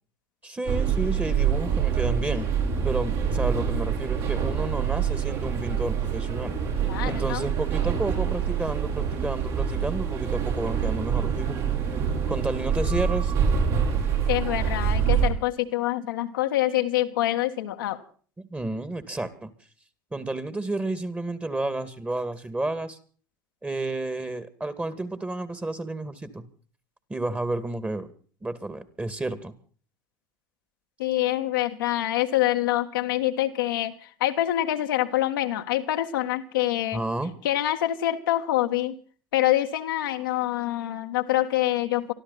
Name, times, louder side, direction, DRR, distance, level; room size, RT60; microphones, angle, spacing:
voice 1, 0.4-2.5 2.8-6.6 7.0-11.7 12.3-13.3 18.4-19.5 20.1-23.0 23.6-26.4 27.1-28.1 28.4-29.5 36.9-37.3, right 2 dB, 15° right, 13 dB, 2.3 m, -31 dB
sound 1, 0.6-15.3, right 7 dB, 55° right, 6.9 m, -26 dB
voice 2, 6.8-7.5 14.3-18.0 31.0-37.0 37.4-38.9 39.3-42.1, left 14 dB, 75° left, 4 dB, 1.6 m, -26 dB
24.0 x 13.0 x 4.2 m, 0.43 s
hypercardioid pair, 75°, 11 cm